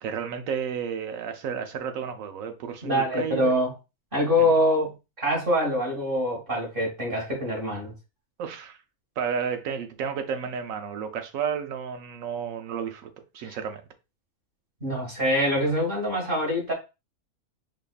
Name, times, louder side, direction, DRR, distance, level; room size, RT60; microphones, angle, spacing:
voice 1, 0.0-3.5 8.4-8.8 9.2-13.1 13.3-13.8, right 7 dB, 70° right, 1.0 m, -32 dB
voice 2, 2.8-3.7 4.1-7.9 13.4-13.6 14.8-16.7, left 1 dB, 35° right, 1.7 m, -25 dB
5.0 x 2.5 x 2.3 m
omnidirectional pair, 1.5 m